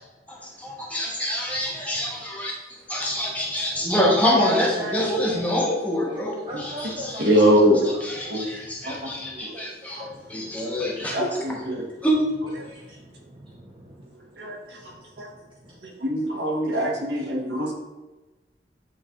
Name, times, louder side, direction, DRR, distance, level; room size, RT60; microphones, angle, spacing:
voice 1, 0.3-7.3 8.0-10.0 10.3-11.2 12.0-12.2, equal, 10° left, -3 dB, 1.1 m, -26 dB
voice 2, 4.4-5.0 6.5-7.5 8.1-8.4 8.9-9.2 9.5-10.7 11.0-11.2 12.6-15.9, right 1 dB, 30° right, -5 dB, 0.7 m, -38 dB
voice 3, 7.2-7.8 8.2-8.6 8.8-9.7 10.0-10.1 11.1-11.8 14.4-14.8 15.2-15.3 15.8-17.7, equal, 75° right, -1 dB, 1.4 m, -23 dB
8.6 x 3.3 x 3.7 m, 1.2 s
head